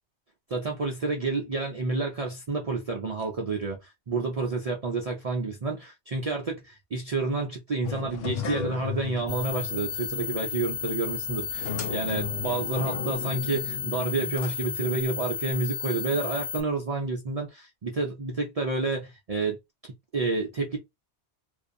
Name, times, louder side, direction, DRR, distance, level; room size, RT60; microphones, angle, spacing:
voice 1, 0.5-19.6 20.1-20.8, right 3 dB, 60° right, 0.4 m, -29 dB
sound 1, 7.8-15.4, left 7 dB, 65° left, 0.8 m, -36 dB
sound 2, 9.3-16.6, left 6 dB, 80° left, 1.2 m, -33 dB
2.5 x 2.3 x 2.5 m
omnidirectional pair, 1.2 m